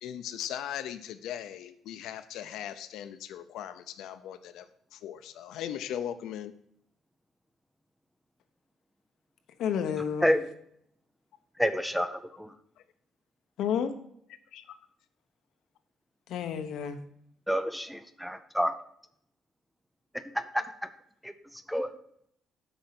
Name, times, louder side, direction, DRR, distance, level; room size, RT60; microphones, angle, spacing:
voice 1, 0.0-4.7 4.9-6.5 14.5-14.8, left 10 dB, 85° left, 11 dB, 0.5 m, -38 dB
voice 2, 9.6-10.3 13.6-14.0 16.3-17.0, left 8 dB, 65° left, 8 dB, 1.0 m, -30 dB
voice 3, 11.6-12.5 17.5-18.8 20.1-20.9 21.2-21.9, equal, ahead, 9 dB, 0.4 m, -29 dB
7.9 x 5.4 x 6.0 m, 0.70 s
cardioid pair, 165°, 0 cm